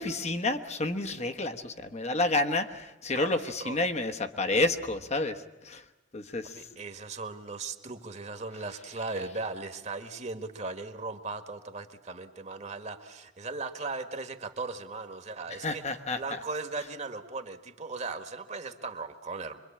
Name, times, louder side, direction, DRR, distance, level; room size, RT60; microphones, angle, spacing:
voice 1, 0.0-5.8 6.1-6.5 15.6-16.4, left 2 dB, 35° left, 7 dB, 1.1 m, -30 dB
voice 2, 3.1-3.8 6.5-19.6, right 3 dB, 40° right, 8 dB, 1.6 m, -38 dB
25.5 x 23.0 x 8.7 m, 0.99 s
head